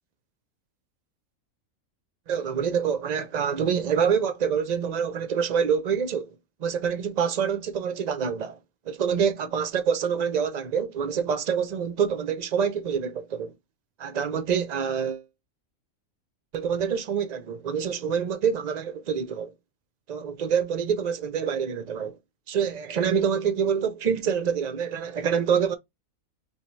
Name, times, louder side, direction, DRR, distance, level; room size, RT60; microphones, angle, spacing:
voice 1, 2.3-6.3 6.6-8.6 8.9-13.5 14.0-15.2 16.5-19.5 20.1-22.2 22.5-25.8, right 7 dB, 70° right, 0.4 m, -26 dB
5.4 x 2.1 x 3.0 m
omnidirectional pair, 1.5 m